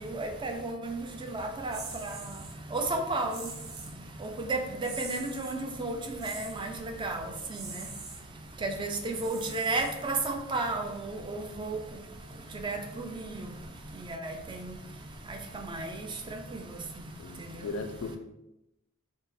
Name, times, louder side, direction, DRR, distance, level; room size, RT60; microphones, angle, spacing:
voice 1, 0.0-17.7, right 2 dB, 20° right, 4 dB, 0.4 m, -34 dB
sound 1, 1.7-2.5 3.3-4.0 4.8-5.6 6.2-6.7 7.5-8.2 9.1-10.3, right 4 dB, 85° right, 0.8 m, -43 dB
voice 2, 17.2-18.2, left 3 dB, 70° left, 8 dB, 0.3 m, -37 dB
3.6 x 2.0 x 4.0 m, 0.91 s
head